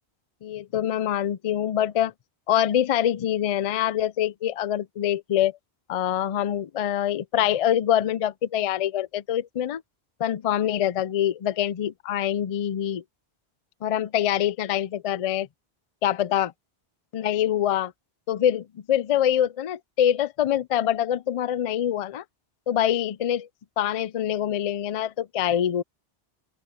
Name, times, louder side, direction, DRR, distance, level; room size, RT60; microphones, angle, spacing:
voice 1, 0.4-2.1 2.5-5.5 5.9-9.8 10.2-13.0 13.8-15.5 16.0-16.5 17.1-17.9 18.3-22.2 22.7-23.5 23.8-25.8, left 10 dB, 55° left, 0.4 m, -25 dB
open air
omnidirectional pair, 1.1 m